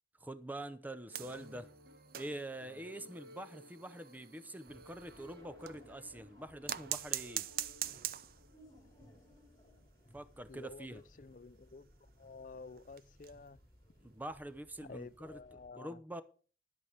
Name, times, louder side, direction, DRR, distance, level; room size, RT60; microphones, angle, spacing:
voice 1, 0.2-1.7 2.1-7.5 10.1-11.0 14.0-15.4 15.8-16.2, right 1 dB, 10° right, 0.7 m, -45 dB
sound 1, 1.1-5.9 6.7-8.6 8.9-9.0 9.3-9.4 9.7-9.8 10.5-13.6 14.0-14.2 15.4-15.5, right 12 dB, 55° right, 0.5 m, -44 dB
sound 2, 1.1-8.6, equal, 70° right, 1.4 m, -58 dB
sound 3, 4.7-15.7, left 1 dB, 25° left, 2.9 m, -62 dB
voice 2, 10.5-13.6 14.9-16.0, left 4 dB, 50° left, 0.5 m, -51 dB
11.0 x 8.3 x 5.0 m
head